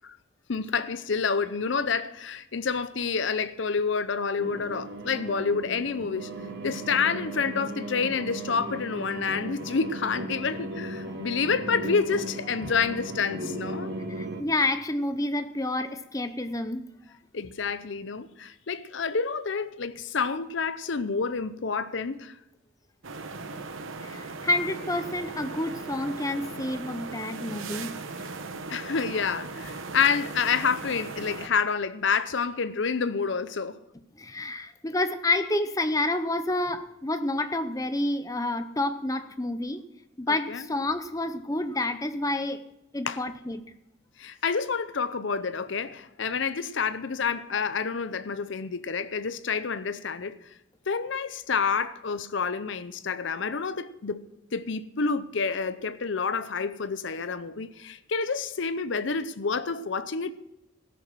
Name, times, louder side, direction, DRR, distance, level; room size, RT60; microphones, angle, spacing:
voice 1, 0.5-6.3 6.6-13.9 17.3-22.3 28.7-33.8 40.3-40.6 43.1-43.2 44.2-50.4 50.9-54.2 54.5-60.3, left 5 dB, 65° left, 0.6 m, -28 dB
sound 1, 4.4-14.4, right 1 dB, 55° right, 1.6 m, -36 dB
voice 2, 14.1-16.9 24.0-28.0 34.2-39.8 40.2-42.6 42.9-43.6, left 2 dB, 15° left, 0.6 m, -29 dB
sound 2, 23.0-31.5, right 3 dB, 80° right, 1.1 m, -38 dB
18.0 x 6.8 x 6.2 m
head